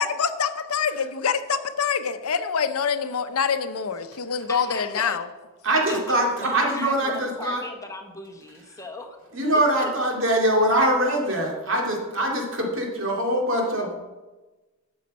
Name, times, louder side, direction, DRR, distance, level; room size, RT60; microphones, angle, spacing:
voice 1, 0.0-5.3, left 6 dB, 85° left, 11 dB, 0.7 m, -25 dB
voice 2, 4.5-5.2 5.9-6.1 6.4-9.2 9.5-9.9, left 2 dB, 15° left, 3 dB, 0.9 m, -38 dB
voice 3, 5.6-7.6 9.3-14.0, right 1 dB, 60° right, 0 dB, 2.3 m, -23 dB
12.0 x 6.5 x 5.3 m, 1.2 s
head